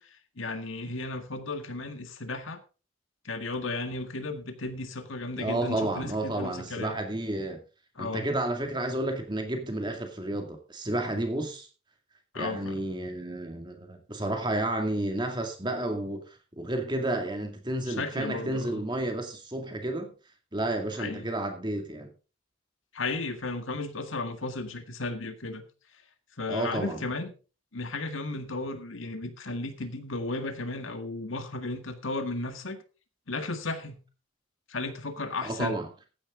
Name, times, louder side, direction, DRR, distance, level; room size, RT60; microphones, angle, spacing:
voice 1, 0.0-2.6 3.2-7.0 8.0-8.3 12.3-12.8 17.9-18.8 21.0-21.3 22.9-25.6 26.4-27.3 27.7-32.8 33.3-34.0 34.7-35.8, left 2 dB, 75° left, 1.8 m, -34 dB
voice 2, 5.3-7.6 8.0-11.7 12.4-20.1 20.5-22.1 26.5-27.0 35.4-35.9, right 1 dB, 20° right, 2.2 m, -31 dB
14.5 x 10.0 x 3.8 m
head